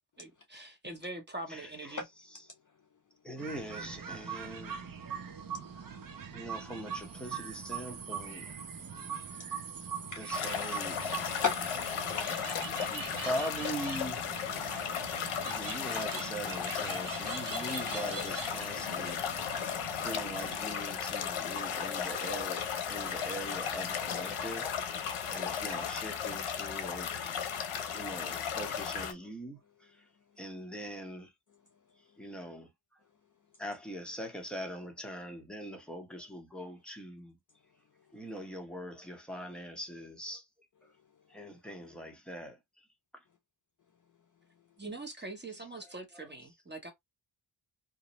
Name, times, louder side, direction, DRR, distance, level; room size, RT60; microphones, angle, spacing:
voice 1, 0.2-2.0 44.8-46.9, right 2 dB, 20° right, 1.0 m, -43 dB
voice 2, 1.5-2.0 3.2-4.8 6.3-8.5 10.2-11.2 12.4-14.4 15.4-24.7 25.3-27.2 27.9-30.1 30.4-31.3 32.2-32.7 33.6-37.4 38.1-40.5 41.3-42.9 43.1-43.2 46.1-46.3, equal, ahead, 0.8 m, -42 dB
voice 3, 2.5-3.0 5.2-6.3 9.1-9.5 10.1-10.5 11.2-12.0 12.3-13.2 14.6-14.7 32.1-32.2 37.9-38.2 41.0-41.5, left 5 dB, 40° left, 0.5 m, -41 dB
sound 1, 3.4-20.6, right 7 dB, 45° right, 0.6 m, -42 dB
sound 2, 10.3-29.1, left 7 dB, 80° left, 0.7 m, -35 dB
2.5 x 2.0 x 2.9 m
wide cardioid pair, 75°, 50 cm